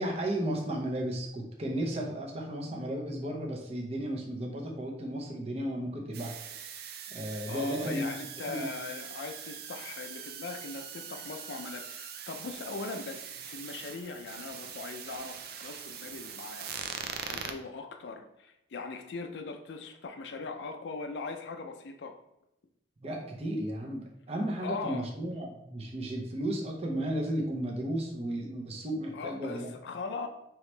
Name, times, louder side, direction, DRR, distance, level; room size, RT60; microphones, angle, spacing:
voice 1, 0.0-6.4 7.1-8.1 8.5-8.6 17.2-17.4 23.0-29.7, right 1 dB, 35° right, 0 dB, 0.8 m, -34 dB
sound 1, 6.1-17.5, right 7 dB, 60° right, 0.4 m, -42 dB
voice 2, 7.5-22.1 24.6-25.1 29.1-30.3, left 3 dB, 70° left, 6 dB, 0.4 m, -40 dB
4.8 x 3.0 x 3.2 m, 0.86 s
head